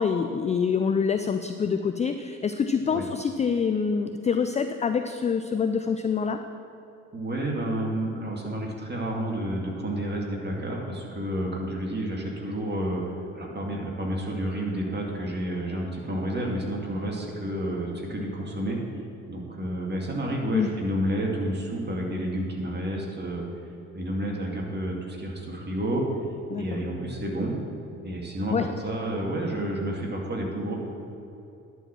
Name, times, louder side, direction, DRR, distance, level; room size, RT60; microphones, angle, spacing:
voice 1, 0.0-6.4 20.5-20.7 26.5-26.6 28.5-28.7, left 6 dB, 20° left, 8 dB, 0.4 m, -26 dB
voice 2, 7.1-18.8 19.3-23.4 23.9-26.0 26.6-27.6 28.0-30.8, right 1 dB, 25° right, -1 dB, 2.3 m, -30 dB
10.5 x 4.7 x 7.5 m, 2.7 s
hypercardioid pair, 50°, 40 cm